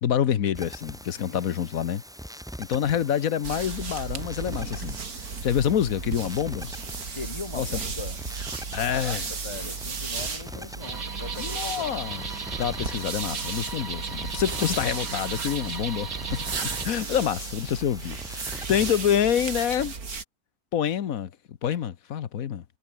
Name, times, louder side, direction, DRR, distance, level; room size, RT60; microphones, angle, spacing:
voice 1, 0.0-2.0 2.6-5.0 5.4-6.7 7.5-7.8 8.7-9.3 11.4-16.4 16.8-19.9 20.7-22.6, left 9 dB, 75° left, 1.4 m, -27 dB
sound 1, 0.5-18.9, equal, ahead, 6.4 m, -43 dB
voice 2, 1.2-1.5 7.1-8.2 8.9-11.9, left 4 dB, 35° left, 0.5 m, -40 dB
sound 2, 3.4-20.2, right 5 dB, 85° right, 3.0 m, -35 dB
sound 3, 10.8-16.8, right 5 dB, 70° right, 2.6 m, -36 dB
omnidirectional pair, 1.5 m